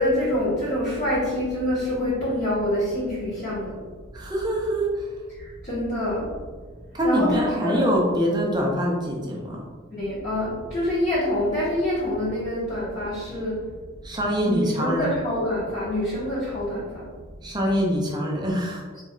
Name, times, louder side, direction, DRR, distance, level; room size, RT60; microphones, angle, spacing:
voice 1, 0.0-3.9 5.3-6.5 7.0-7.9 9.9-13.7 14.4-17.1, left 1 dB, 35° left, -13 dB, 1.3 m, -26 dB
voice 2, 4.1-4.9 6.9-9.6 14.0-15.1 17.4-18.8, equal, 20° right, -2 dB, 0.6 m, -24 dB
4.1 x 3.1 x 2.4 m, 1.5 s
head